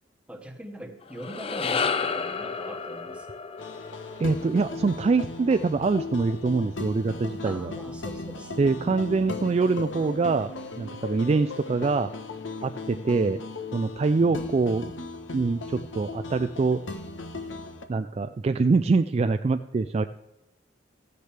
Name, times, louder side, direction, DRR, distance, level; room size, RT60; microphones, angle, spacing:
voice 1, 0.3-3.3 7.4-9.4 11.2-11.5, equal, 5° right, 3 dB, 1.2 m, -42 dB
sound 1, 1.0-5.5, left 5 dB, 30° left, 0.5 m, -32 dB
sound 2, 3.6-17.9, left 3 dB, 90° left, 1.1 m, -37 dB
voice 2, 4.2-7.7 8.6-10.5 10.8-12.1 12.6-13.4 13.7-14.9 15.3-16.8 17.9-20.0, right 4 dB, 35° right, 9 dB, 0.3 m, -24 dB
15.0 x 9.4 x 3.3 m, 0.93 s
head